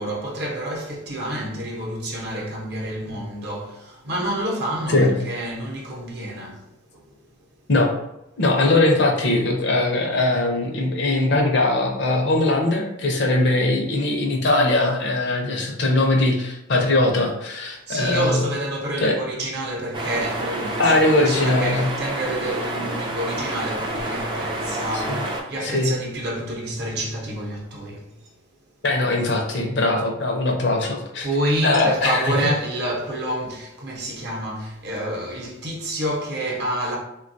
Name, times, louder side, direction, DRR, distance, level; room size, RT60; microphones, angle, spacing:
voice 1, 0.0-7.2 17.7-28.3 31.2-37.0, right 1 dB, 50° right, 0.7 m, -28 dB
voice 2, 8.4-18.4 19.0-19.2 20.8-21.9 24.9-25.2 25.6-26.0 28.8-31.3 31.6-32.3, left 2 dB, 55° left, 0.5 m, -20 dB
sound 1, 19.9-25.4, right 1 dB, 20° right, 0.3 m, -29 dB
3.3 x 2.2 x 2.6 m
head